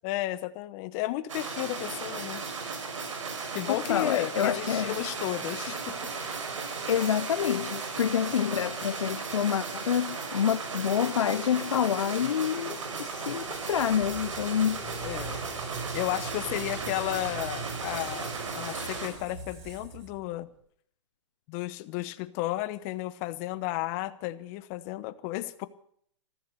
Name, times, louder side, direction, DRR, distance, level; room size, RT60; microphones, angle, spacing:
voice 1, 0.0-2.4 3.5-6.0 15.0-15.4 15.9-20.5 21.5-25.7, left 16 dB, 35° left, 1.0 m, -33 dB
sound 1, 1.3-19.1, right 4 dB, 85° right, 5.2 m, -36 dB
voice 2, 3.7-4.9 6.9-14.9, left 9 dB, 85° left, 0.6 m, -27 dB
Squeak, 12.9-20.6, right 4 dB, 35° right, 7.0 m, -43 dB
14.5 x 14.5 x 6.8 m
hypercardioid pair, 140°, 16 cm